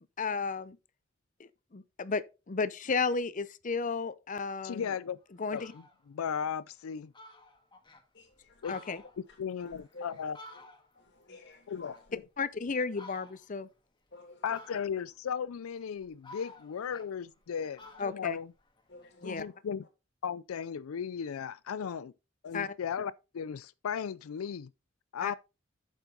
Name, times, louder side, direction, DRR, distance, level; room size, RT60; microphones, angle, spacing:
voice 1, 0.2-0.8 1.4-4.8 5.4-5.7 8.7-9.0 12.4-13.7 18.0-18.4 19.2-19.4 22.5-22.7 25.2-25.3, left 4 dB, 40° left, 0.6 m, -33 dB
voice 2, 4.6-5.2 5.5-7.1 8.6-8.8 9.4-10.4 11.7-12.2 14.4-18.5 19.2-19.8 20.2-22.1 22.4-24.7 25.1-25.3, left 7 dB, 90° left, 0.4 m, -36 dB
Fowl, 5.0-5.1 5.4-6.0 6.5-6.6 6.8-6.9 7.1-8.0 8.5-11.1 11.4-12.5 12.9-13.6 14.5-15.1 15.7-17.5 17.8-19.3, left 2 dB, 20° left, 1.6 m, -53 dB
voice 3, 8.1-8.5 9.6-10.1 11.0-12.0 14.1-14.4 18.9-19.5, left 2 dB, 55° left, 2.7 m, -51 dB
8.9 x 7.3 x 3.9 m
head